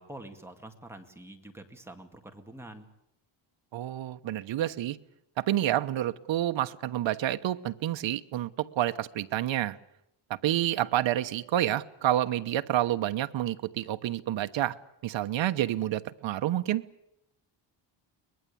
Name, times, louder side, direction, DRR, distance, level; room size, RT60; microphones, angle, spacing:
voice 1, 0.0-2.9, right 1 dB, 5° right, 2.1 m, -46 dB
voice 2, 3.7-5.0 5.4-9.8 10.3-14.7 15.0-16.8, right 13 dB, 75° right, 1.1 m, -29 dB
24.0 x 20.5 x 8.5 m
wide cardioid pair, 175°, 46 cm